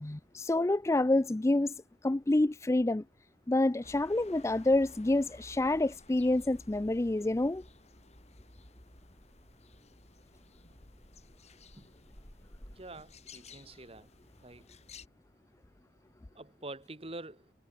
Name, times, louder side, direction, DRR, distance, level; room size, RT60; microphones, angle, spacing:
voice 1, 0.0-1.7 2.0-3.0 3.5-7.6, left 2 dB, 15° left, 0.4 m, -28 dB
sound 1, 3.8-15.1, left 2 dB, 40° left, 8.0 m, -54 dB
voice 2, 12.8-14.1 14.4-14.7 16.3-17.5, right 2 dB, 35° right, 2.1 m, -46 dB
head